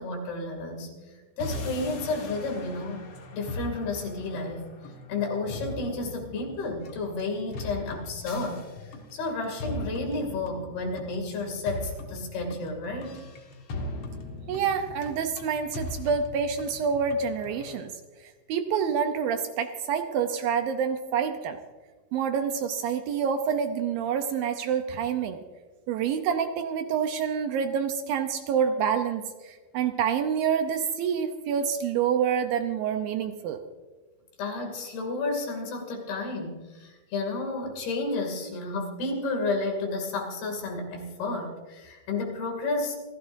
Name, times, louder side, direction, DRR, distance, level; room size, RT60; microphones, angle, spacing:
voice 1, 0.0-3.0 3.3-4.7 5.1-8.6 9.1-13.2 34.4-43.0, left 3 dB, 75° left, 2 dB, 4.5 m, -31 dB
sound 1, 1.4-17.8, left 2 dB, 50° left, 1.8 m, -39 dB
voice 2, 14.5-17.9 18.5-21.6 22.1-25.4 25.9-33.6, right 7 dB, 75° right, 7 dB, 2.3 m, -27 dB
28.0 x 15.5 x 2.6 m, 1.3 s
omnidirectional pair, 4.6 m